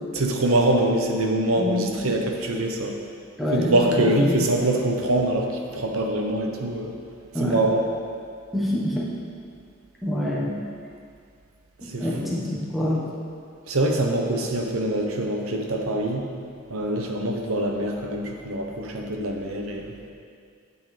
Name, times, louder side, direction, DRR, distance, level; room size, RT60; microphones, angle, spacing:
voice 1, 0.1-3.0 3.5-5.5 5.8-7.0 7.4-7.9 11.9-12.3 13.7-16.3 16.7-19.9, right 1 dB, 85° right, 2 dB, 1.0 m, -24 dB
voice 2, 1.6-2.1 3.4-4.5 7.3-7.6 8.5-9.1 10.0-10.5 11.8-13.0, left 1 dB, ahead, -6 dB, 1.2 m, -26 dB
9.1 x 8.2 x 3.4 m, 2.3 s
head